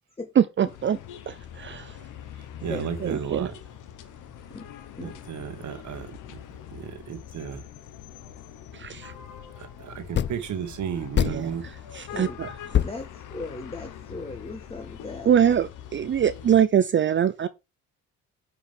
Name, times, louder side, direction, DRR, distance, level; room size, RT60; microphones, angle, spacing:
voice 1, 0.4-1.0 1.6-2.0 3.0-3.5 8.7-9.1 11.3-11.5 11.9-12.5 12.7-12.8 15.3-17.5, right 9 dB, 40° right, 0.6 m, -23 dB
sound 1, 0.7-16.6, left 10 dB, 85° left, 1.2 m, -43 dB
voice 2, 2.6-3.5 5.0-6.4 6.7-7.6 9.6-11.6, right 8 dB, 70° right, 1.7 m, -34 dB
sound 2, 8.0-8.1 10.1-10.6 11.1-11.8 12.2-12.3 12.7-13.9, left 9 dB, 40° left, 0.5 m, -26 dB
voice 3, 12.1-15.6, left 2 dB, 20° left, 1.5 m, -38 dB
9.2 x 4.9 x 3.5 m
cardioid pair, 90°, 30 cm